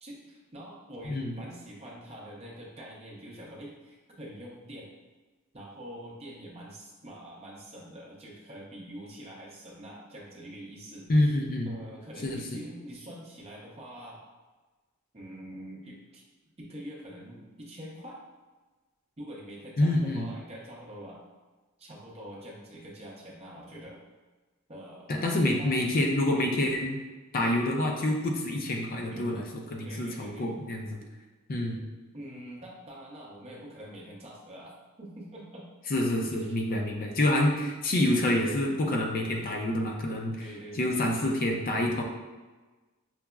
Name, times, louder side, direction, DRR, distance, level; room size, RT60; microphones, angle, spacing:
voice 1, 0.0-4.9 5.5-11.3 11.7-14.2 15.1-16.2 16.6-18.2 19.2-21.2 21.8-24.0 24.7-25.1 25.6-25.7 29.1-29.4 29.8-30.5 32.1-35.7 36.4-36.5 37.6-37.7 40.4-41.1, equal, 30° right, -4 dB, 0.7 m, -45 dB
voice 2, 1.0-1.4 11.1-11.7 12.2-12.4 19.8-20.3 25.1-27.0 27.3-29.4 29.7-31.0 31.5-31.8 35.9-40.5 40.7-42.0, left 1 dB, 40° left, 1 dB, 0.4 m, -27 dB
5.8 x 2.0 x 2.3 m, 1.2 s
head